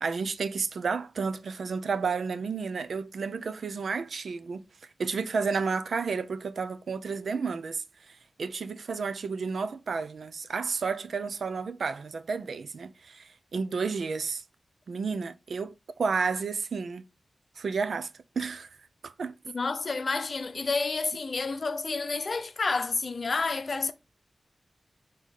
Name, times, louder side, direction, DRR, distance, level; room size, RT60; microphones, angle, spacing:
voice 1, 0.0-4.6 5.0-14.4 14.9-15.7 16.0-17.0 17.6-18.1 18.4-18.7 19.0-19.3, right 5 dB, 80° right, 0.6 m, -31 dB
voice 2, 19.5-23.9, left 4 dB, 55° left, 0.8 m, -30 dB
6.5 x 3.8 x 4.0 m
wide cardioid pair, 110°, 0 cm